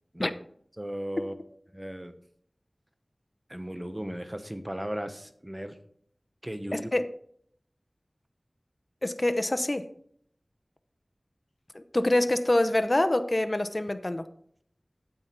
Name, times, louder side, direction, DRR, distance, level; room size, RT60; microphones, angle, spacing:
voice 1, 0.8-1.3 1.7-2.1 3.5-5.8 6.4-6.9, equal, 20° right, 9 dB, 0.9 m, -36 dB
voice 2, 6.7-7.1 9.0-9.9 11.7-14.2, left 1 dB, 40° left, 10 dB, 0.7 m, -25 dB
9.1 x 7.9 x 4.4 m, 0.66 s
wide cardioid pair, 45°, 0 cm